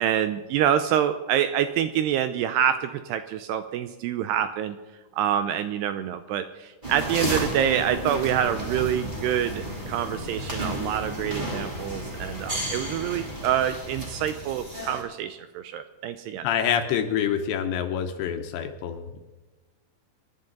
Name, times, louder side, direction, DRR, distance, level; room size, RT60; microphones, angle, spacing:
voice 1, 0.0-4.8 5.1-16.5, right 10 dB, 80° right, 10 dB, 2.4 m, -26 dB
sound 1, 6.8-15.0, right 1 dB, 15° right, 2.3 m, -32 dB
voice 2, 16.4-19.2, left 8 dB, 75° left, 7 dB, 3.0 m, -26 dB
27.0 x 11.0 x 4.0 m, 1.2 s
omnidirectional pair, 5.4 m